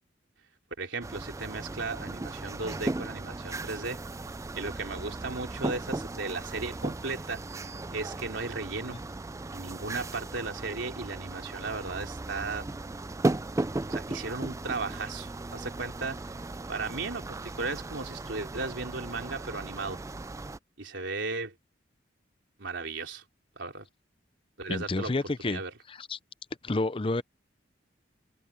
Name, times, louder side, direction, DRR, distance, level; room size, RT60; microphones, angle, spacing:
voice 1, 0.8-4.0 4.5-7.4 7.9-9.0 9.5-12.7 13.9-16.3 16.7-20.0 20.8-21.5 22.6-23.2 23.6-23.8 24.6-25.1 25.4-25.7, right 3 dB, 90° right, 3.4 m, -36 dB
sound 1, 1.0-20.6, right 2 dB, 15° right, 0.4 m, -36 dB
voice 2, 24.7-25.6 25.9-26.2 26.6-27.2, left 2 dB, 30° left, 0.6 m, -30 dB
head